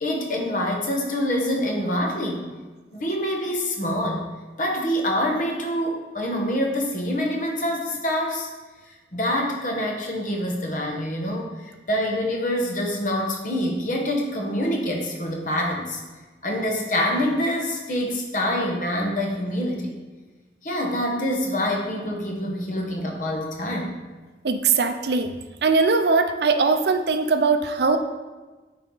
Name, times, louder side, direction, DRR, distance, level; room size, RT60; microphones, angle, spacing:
voice 1, 0.0-2.5 2.9-4.3 4.6-8.5 9.1-16.0 16.4-20.0 20.6-24.0, equal, 45° left, 1 dB, 1.2 m, -26 dB
voice 2, 24.4-25.3 25.6-28.0, right 4 dB, 70° right, 8 dB, 0.5 m, -20 dB
8.9 x 4.4 x 3.9 m, 1.2 s
head